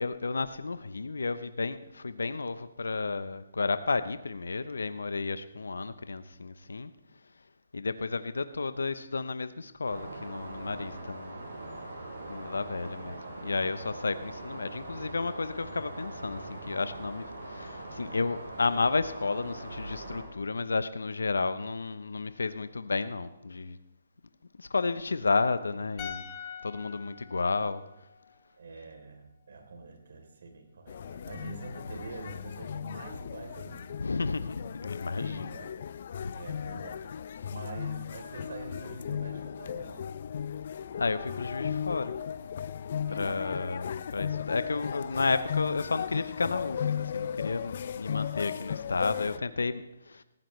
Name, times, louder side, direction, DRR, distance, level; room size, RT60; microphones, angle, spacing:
voice 1, 0.0-6.9 7.7-11.4 12.3-23.8 24.6-26.3 26.6-27.8 34.0-35.5 36.2-36.3 40.9-42.1 43.1-50.2, left 4 dB, 80° left, 13 dB, 0.8 m, -32 dB
sound 1, 9.8-20.2, right 2 dB, 85° right, 6.6 m, -42 dB
voice 2, 12.8-13.6 28.6-34.0 35.1-35.7 36.3-37.2 37.5-40.0 43.0-43.4, right 3 dB, 65° right, 4 dB, 3.4 m, -45 dB
sound 2, 26.0-29.2 29.5-29.6, left 8 dB, 30° left, 2.2 m, -45 dB
sound 3, 30.9-49.4, left 8 dB, 50° left, 0.5 m, -36 dB
19.0 x 15.0 x 3.2 m, 0.88 s
hypercardioid pair, 145°, 0 cm